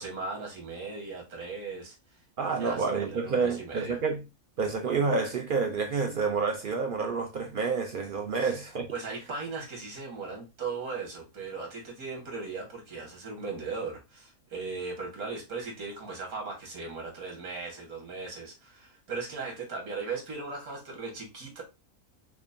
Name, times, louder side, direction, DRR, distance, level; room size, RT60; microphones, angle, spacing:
voice 1, 0.0-2.0 2.4-4.0 8.4-8.5 8.9-21.6, right 4 dB, 90° right, 1.9 m, -38 dB
voice 2, 2.4-4.2 4.6-8.9, right 4 dB, 75° right, 0.4 m, -29 dB
5.8 x 2.1 x 2.5 m
omnidirectional pair, 1.5 m